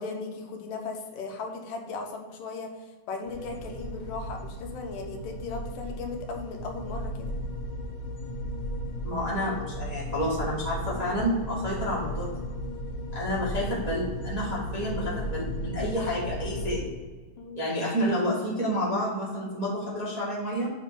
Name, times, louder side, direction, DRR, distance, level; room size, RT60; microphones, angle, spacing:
voice 1, 0.0-7.4 17.4-17.8, left 3 dB, 90° left, 3 dB, 2.6 m, -37 dB
sound 1, 3.2-16.8, equal, 70° left, 2.5 m, -35 dB
voice 2, 9.0-12.3 13.1-16.9 17.6-20.7, equal, 25° right, -7 dB, 0.8 m, -29 dB
7.1 x 3.6 x 5.7 m, 1.3 s
omnidirectional pair, 3.6 m